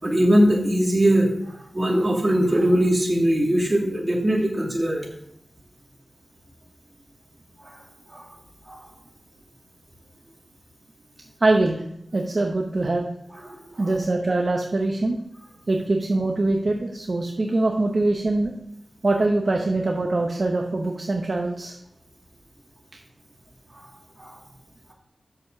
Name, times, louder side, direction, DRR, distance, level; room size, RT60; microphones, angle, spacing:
voice 1, 0.0-5.1 7.6-7.8 8.1-8.2 8.7-8.8 13.5-13.9 24.2-24.3, equal, 25° right, -2 dB, 2.3 m, -21 dB
voice 2, 11.4-11.8 12.1-13.1 13.8-15.2 15.7-18.5 19.0-21.8, right 2 dB, 45° right, 2 dB, 0.8 m, -23 dB
6.5 x 5.6 x 6.7 m, 0.76 s
wide cardioid pair, 80°, 0 cm